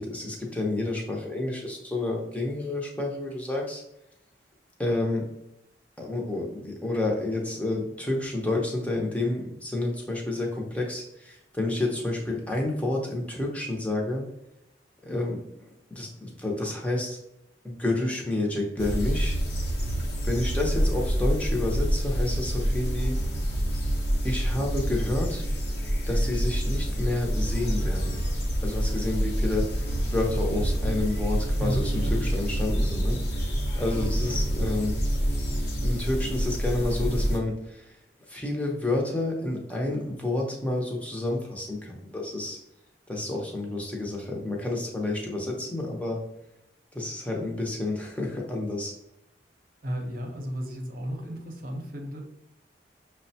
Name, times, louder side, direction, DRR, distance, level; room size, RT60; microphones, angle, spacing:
voice 1, 0.0-3.8 4.8-5.3 6.0-14.2 15.0-17.2 17.6-19.4 20.2-23.2 24.2-25.5 26.1-28.2 28.6-35.0 35.8-38.0 38.3-42.6 43.1-46.2 46.9-48.9, left 2 dB, 10° left, -1 dB, 0.6 m, -30 dB
sound 1, 18.8-37.4, equal, 60° left, 0.8 m, -27 dB
voice 2, 31.6-32.1 49.8-52.2, equal, 50° right, 2 dB, 0.7 m, -33 dB
6.1 x 2.1 x 2.7 m, 0.86 s
head